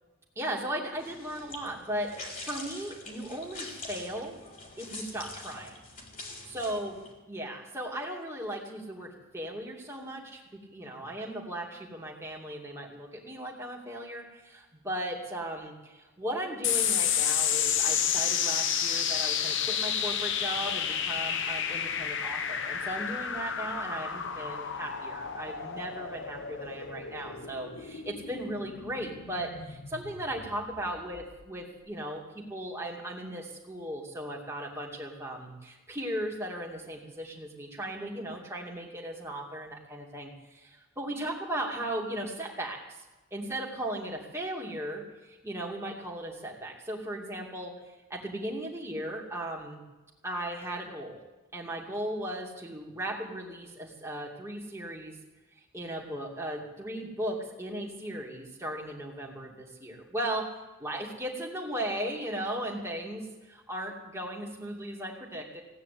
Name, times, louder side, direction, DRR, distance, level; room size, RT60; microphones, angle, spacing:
voice 1, 0.4-4.4 4.8-5.8 6.4-7.0 7.3-43.0 43.3-47.7 48.1-49.8 50.2-51.2 51.5-55.2 55.7-60.4 60.8-65.6, right 1 dB, 15° right, -2 dB, 2.6 m, -37 dB
sound 1, 0.9-7.1, left 2 dB, 40° left, 3.6 m, -44 dB
sound 2, 16.6-31.4, left 8 dB, 60° left, 0.9 m, -31 dB
17.0 x 9.7 x 8.6 m, 1.1 s
head